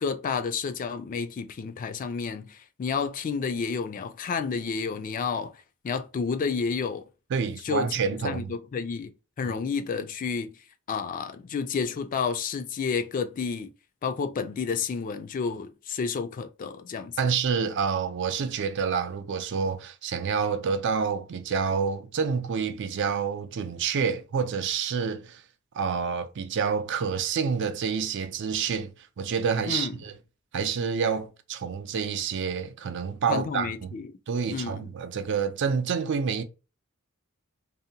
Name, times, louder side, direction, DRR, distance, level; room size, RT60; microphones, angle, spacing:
voice 1, 0.0-5.5 5.8-7.0 7.6-8.0 8.2-9.1 9.4-10.5 10.9-13.7 14.0-17.2 29.7-30.0 33.3-34.1 34.5-34.9, left 5 dB, 40° left, 0.3 m, -30 dB
voice 2, 7.3-8.5 9.4-9.5 17.2-25.4 25.7-28.9 29.2-30.1 30.5-33.9 34.3-36.4, right 6 dB, 60° right, 0.4 m, -28 dB
2.7 x 2.1 x 2.6 m
head